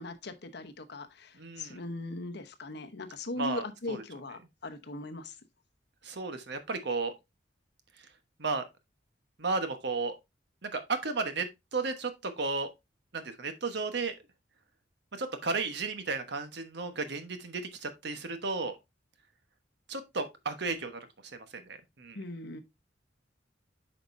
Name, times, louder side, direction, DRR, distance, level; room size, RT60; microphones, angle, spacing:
voice 1, 0.0-5.3 22.1-22.6, left 2 dB, 65° left, 1.0 m, -39 dB
voice 2, 1.3-1.8 3.4-4.0 6.0-7.1 8.4-8.6 9.4-10.1 10.6-12.7 13.1-14.1 15.1-18.8 19.9-21.1 21.3-22.2, right 3 dB, 65° right, 1.2 m, -34 dB
8.7 x 5.2 x 2.6 m
head